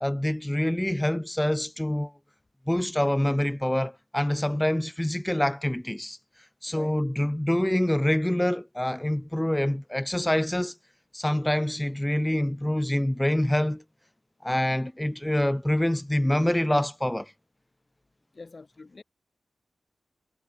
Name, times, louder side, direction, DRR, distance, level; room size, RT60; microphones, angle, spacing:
voice 1, 0.0-2.1 2.7-6.2 6.6-10.7 11.1-13.8 14.4-17.3, left 1 dB, 10° left, 0.4 m, -26 dB
voice 2, 6.7-7.0 18.3-19.0, left 3 dB, 45° left, 2.1 m, -45 dB
cardioid pair, 65°, 0 cm